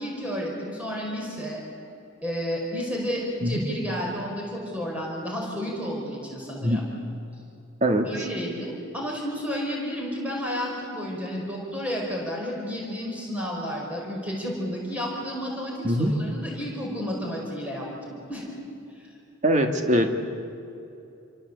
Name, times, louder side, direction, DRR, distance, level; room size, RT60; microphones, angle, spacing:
voice 1, 0.0-1.6 2.2-6.9 8.1-18.5, equal, 5° right, -2 dB, 5.1 m, -31 dB
voice 2, 7.8-8.2 15.8-16.1 19.4-20.1, equal, 35° right, 4 dB, 2.1 m, -22 dB
29.0 x 24.0 x 8.3 m, 2.7 s
head